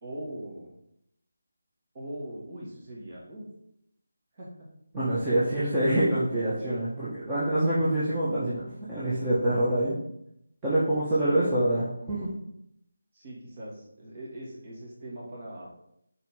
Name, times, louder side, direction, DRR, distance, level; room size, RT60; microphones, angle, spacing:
voice 1, 0.0-0.7 1.9-3.5 4.4-4.7 11.2-11.7 13.1-15.8, right 1 dB, 35° right, -4 dB, 2.8 m, -41 dB
voice 2, 4.9-10.0 10.6-12.3, right 1 dB, 15° right, -11 dB, 1.7 m, -26 dB
5.8 x 4.9 x 5.5 m, 0.75 s
figure-of-eight pair, 165°, 0 cm